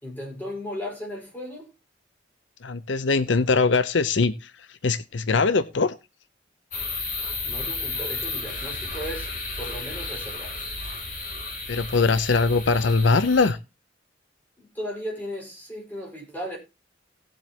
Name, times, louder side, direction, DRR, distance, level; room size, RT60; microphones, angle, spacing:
voice 1, 0.0-1.7 7.4-9.3 9.6-10.6 14.6-16.6, equal, 10° left, 5.2 m, -36 dB
voice 2, 2.6-4.3 4.8-5.9 11.7-13.6, left 4 dB, 80° left, 0.7 m, -21 dB
sound 1, 6.7-13.5, left 3 dB, 45° left, 3.2 m, -33 dB
18.5 x 7.6 x 2.9 m
head